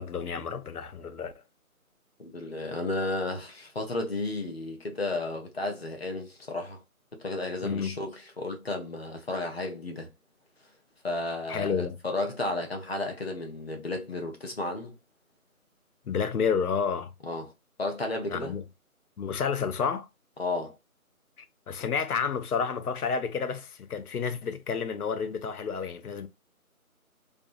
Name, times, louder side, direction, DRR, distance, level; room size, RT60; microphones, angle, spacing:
voice 1, 0.0-1.3 7.6-8.0 11.5-12.0 16.1-17.1 18.3-18.6 19.2-20.1 21.7-26.3, left 6 dB, 85° left, 0.6 m, -30 dB
voice 2, 2.2-6.8 7.2-10.1 11.0-14.9 17.2-17.5 17.8-18.6 20.4-20.8, left 2 dB, 45° left, 0.6 m, -33 dB
2.6 x 2.2 x 2.4 m
figure-of-eight pair, 170°, 44 cm